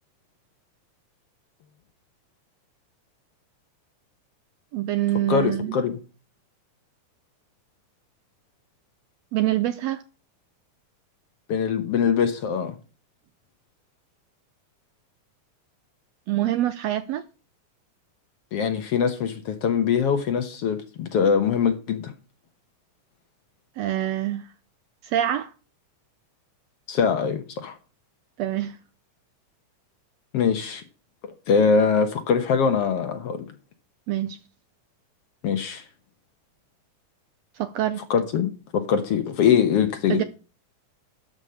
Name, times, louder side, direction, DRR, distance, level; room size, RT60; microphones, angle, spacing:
voice 1, 4.7-5.8 9.3-10.0 16.3-17.2 23.8-24.5 25.0-25.5 28.4-28.8 34.1-34.4 37.5-38.0 40.1-40.2, right 12 dB, 75° right, 1.6 m, -25 dB
voice 2, 5.3-6.0 11.5-12.8 18.5-22.1 26.9-27.8 30.3-30.8 31.2-33.5 35.4-35.8 38.0-40.2, left 6 dB, 60° left, 1.7 m, -23 dB
13.0 x 5.2 x 6.4 m
omnidirectional pair, 3.5 m